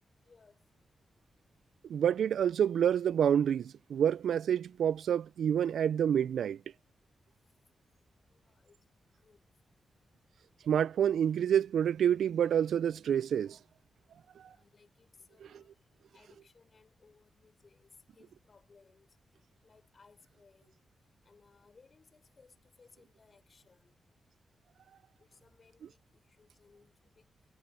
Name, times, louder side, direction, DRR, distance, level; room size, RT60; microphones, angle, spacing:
voice 1, 0.1-0.9 7.4-7.5 8.3-8.9 9.2-9.6 14.4-19.2 19.6-20.8 21.2-24.0 25.2-27.3, left 4 dB, 45° left, 6.0 m, -64 dB
voice 2, 1.9-6.6 10.7-13.6, right 9 dB, 85° right, 0.3 m, -28 dB
cardioid pair, 95°, 0 cm